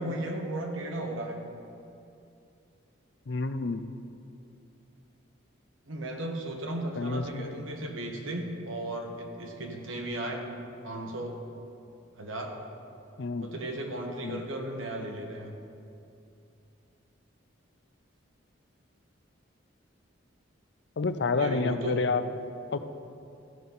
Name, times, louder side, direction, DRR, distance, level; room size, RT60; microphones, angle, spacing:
voice 1, 0.0-1.4 5.9-10.4 10.8-11.3 12.2-12.6 13.4-15.5 21.4-22.0, right 1 dB, 80° right, 2 dB, 1.2 m, -35 dB
voice 2, 3.3-3.8 7.0-7.6 13.2-13.5 14.2-14.4 21.0-22.3 22.7-22.8, left 3 dB, 55° left, 10 dB, 0.5 m, -29 dB
14.0 x 5.5 x 5.5 m, 2.6 s
head